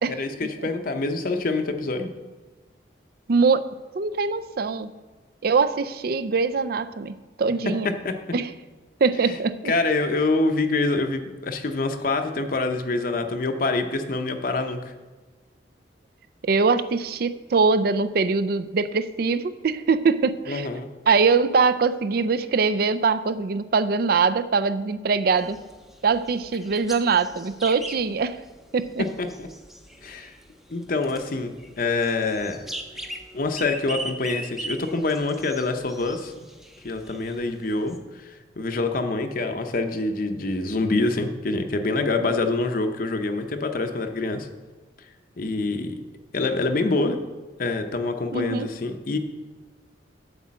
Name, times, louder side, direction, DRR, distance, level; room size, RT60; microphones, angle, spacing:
voice 1, 0.1-2.1 8.0-8.2 9.3-9.4 9.6-14.9 20.5-20.9 29.0-29.5 30.0-30.3 30.7-32.6 33.3-36.3 36.8-44.5 45.4-46.0 46.3-47.2 47.6-49.2, left 3 dB, 50° left, 6 dB, 0.6 m, -26 dB
voice 2, 3.3-3.7 4.0-4.9 5.4-7.9 8.3-8.5 9.0-9.7 16.4-20.7 21.1-25.6 26.0-28.4 28.7-29.0 48.3-48.7, right 4 dB, 55° right, 13 dB, 0.4 m, -22 dB
sound 1, 25.4-38.0, right 1 dB, ahead, 0.6 m, -40 dB
8.1 x 4.9 x 7.4 m, 1.3 s
head